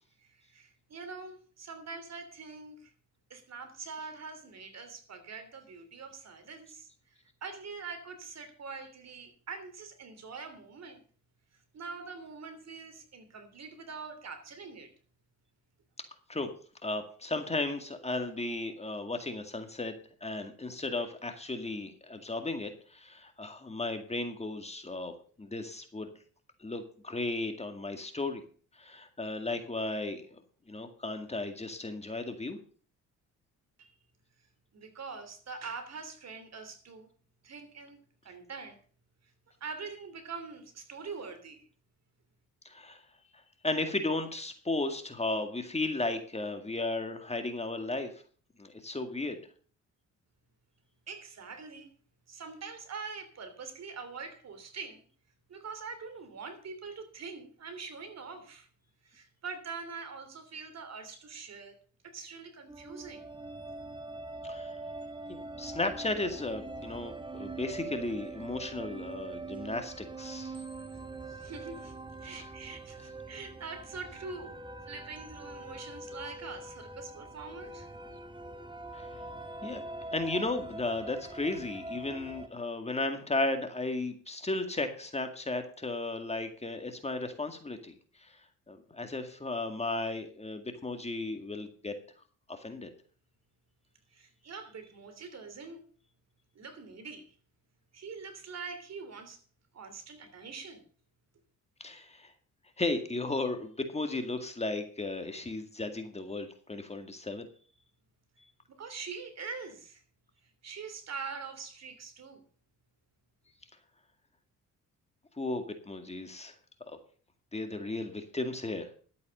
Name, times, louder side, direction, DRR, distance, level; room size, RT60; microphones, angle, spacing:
voice 1, 0.2-2.9 3.3-11.0 11.5-14.9 33.8-33.9 34.7-37.1 37.4-38.8 39.2-39.3 39.6-41.6 51.1-51.9 52.3-55.0 55.5-58.7 59.0-61.8 62.0-63.3 70.9-71.9 72.2-74.6 74.9-77.9 94.1-95.8 96.5-97.3 97.9-99.4 99.7-100.8 108.7-110.0 110.4-112.4, right 5 dB, 50° right, 8 dB, 3.1 m, -44 dB
voice 2, 16.8-19.9 20.2-25.1 25.4-26.1 26.6-28.4 28.8-30.4 30.7-32.6 42.7-43.0 43.6-48.1 48.6-49.4 64.4-64.7 65.3-70.6 78.9-79.1 79.6-79.8 80.1-87.9 88.2-88.4 88.7-91.9 92.5-92.9 101.8-102.3 102.8-107.5 115.4-116.5 116.9-117.0 117.5-118.9, left 2 dB, 20° left, 6 dB, 2.1 m, -35 dB
sound 1, 62.7-82.5, right 2 dB, 15° right, 1.5 m, -43 dB
12.0 x 8.4 x 6.5 m, 0.43 s
cardioid pair, 85°, 33 cm